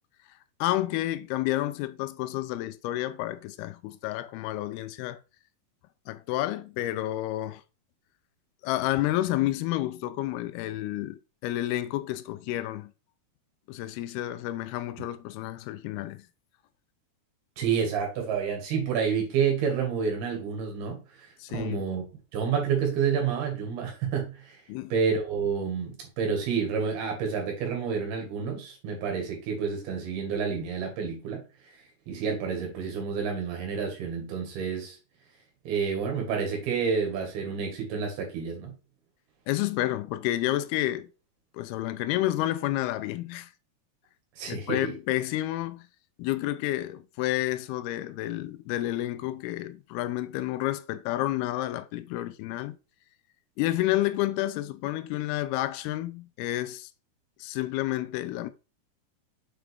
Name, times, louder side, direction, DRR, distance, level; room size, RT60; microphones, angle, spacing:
voice 1, 0.6-5.2 6.1-7.6 8.6-12.9 13.7-16.3 21.4-21.8 24.7-24.9 39.5-41.1 41.5-43.5 44.5-45.9 46.2-52.8 53.6-56.9 57.4-58.5, left 15 dB, 85° left, 2.5 m, -30 dB
voice 2, 17.6-22.0 22.3-35.0 35.7-38.7 44.4-45.0, right 6 dB, 80° right, 3.8 m, -29 dB
7.3 x 5.0 x 3.5 m
omnidirectional pair, 4.4 m